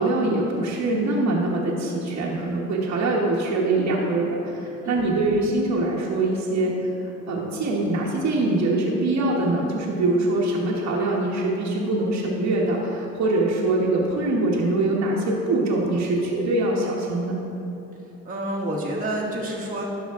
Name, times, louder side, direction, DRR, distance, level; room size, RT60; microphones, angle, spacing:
voice 1, 0.0-17.3, right 2 dB, 65° right, -4 dB, 1.2 m, -23 dB
voice 2, 4.8-5.1 18.2-19.9, right 1 dB, 25° right, -4 dB, 1.3 m, -29 dB
12.0 x 5.6 x 3.6 m, 3.0 s
cardioid pair, 90°, 30 cm